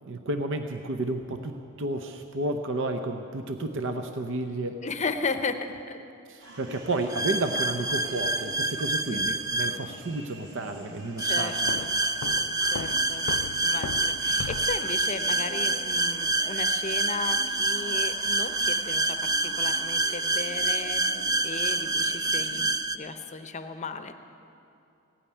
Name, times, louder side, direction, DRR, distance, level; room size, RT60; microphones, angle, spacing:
voice 1, 0.0-4.8 6.3-11.8, right 2 dB, 60° right, 6 dB, 0.7 m, -31 dB
voice 2, 4.8-6.0 9.1-9.4 11.2-11.9 12.7-13.3 13.6-24.1, left 4 dB, 35° left, 9 dB, 0.7 m, -35 dB
sound 1, 6.4-22.6, equal, 90° right, 3.9 m, -47 dB
sound 2, 7.1-9.8 11.2-23.0, right 2 dB, 15° right, 0.4 m, -27 dB
Walk footsteps, 11.7-15.0, left 6 dB, 85° left, 0.4 m, -38 dB
16.0 x 8.9 x 9.8 m, 2.6 s
head